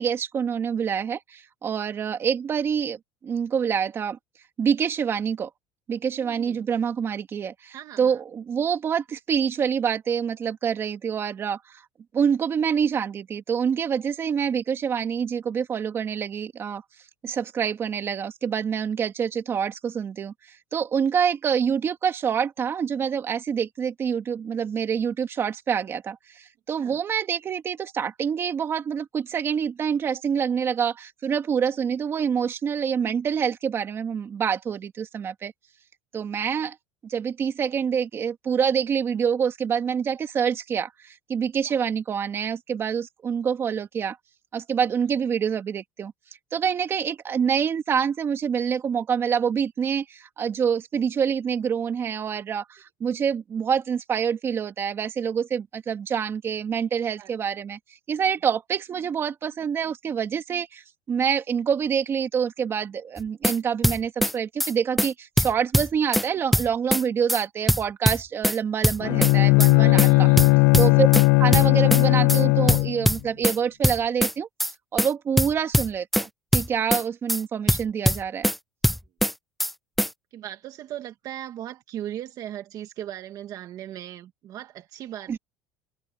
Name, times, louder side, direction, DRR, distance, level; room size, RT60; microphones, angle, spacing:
voice 1, 0.0-4.2 4.6-5.5 5.9-11.8 12.1-16.8 17.2-20.3 20.7-35.5 36.1-36.8 37.0-44.2 44.5-46.1 46.5-57.8 58.1-70.3 70.8-71.1 71.4-74.5 74.9-78.5 85.3-85.4, right 7 dB, 30° right, 2.4 m, -26 dB
voice 2, 6.2-6.6 7.7-8.2 26.8-27.0 41.6-41.8 57.2-57.3 69.8-71.1 80.3-85.4, right 11 dB, 45° right, 2.0 m, -38 dB
sound 1, 63.2-63.6 63.8-64.3 64.6-64.7 65.0-65.1 65.4-66.3 66.5-67.0 67.3-67.4 67.7-68.6 68.8-69.3 69.6-69.7 70.0-70.1 70.4-71.2 71.5-72.0 72.3-72.4 72.7-73.6 73.8-74.3 74.6-74.7 75.0-75.1 75.4-76.2 76.5-77.0 77.3-77.4 77.7-78.6 78.8-79.3 79.6-79.7 80.0-80.1, equal, ahead, 0.4 m, -22 dB
Bowed string instrument, 69.0-73.1, left 26 dB, 80° left, 0.5 m, -18 dB
cardioid pair, 150°, 9 cm